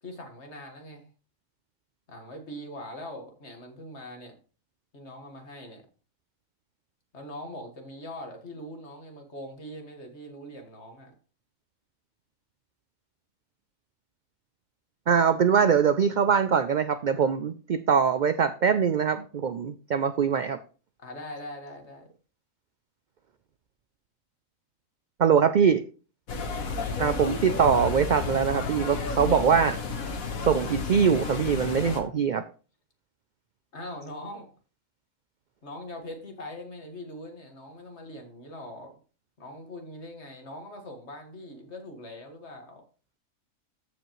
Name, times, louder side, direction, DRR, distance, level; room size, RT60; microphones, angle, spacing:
voice 1, 0.0-1.1 2.1-4.4 4.9-5.9 7.1-11.1 21.0-22.1 33.7-34.5 35.6-38.9 39.4-42.8, left 1 dB, 55° left, 2.0 m, -42 dB
voice 2, 15.1-20.6 25.2-25.8 27.0-29.8 30.5-32.4, right 7 dB, 80° right, 0.4 m, -23 dB
sound 1, 26.3-32.0, left 4 dB, 90° left, 1.6 m, -32 dB
14.0 x 5.1 x 3.1 m
omnidirectional pair, 1.4 m